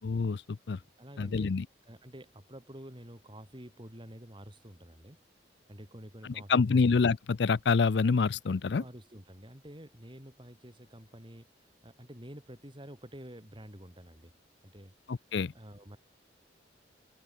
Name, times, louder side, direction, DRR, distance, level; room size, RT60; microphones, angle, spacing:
voice 1, 0.0-0.4 0.7-0.8 1.2-1.6 6.5-8.8 15.1-15.5, left 4 dB, 65° left, 0.5 m, -26 dB
voice 2, 1.0-5.2 5.7-6.9 8.6-14.3 14.6-16.0, equal, 30° right, 7.8 m, -49 dB
head